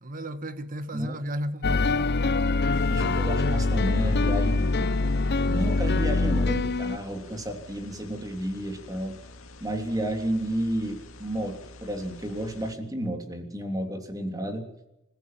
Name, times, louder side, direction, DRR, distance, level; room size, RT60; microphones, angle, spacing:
voice 1, 0.0-2.1, equal, 40° right, 1.6 m, -34 dB
sound 1, 1.6-7.0, left 3 dB, 55° left, 0.7 m, -24 dB
sound 2, 2.7-12.7, left 2 dB, 80° left, 2.2 m, -48 dB
voice 2, 2.9-5.0 5.5-9.2 9.6-14.7, right 1 dB, 20° right, 3.3 m, -31 dB
27.5 x 14.5 x 7.6 m
head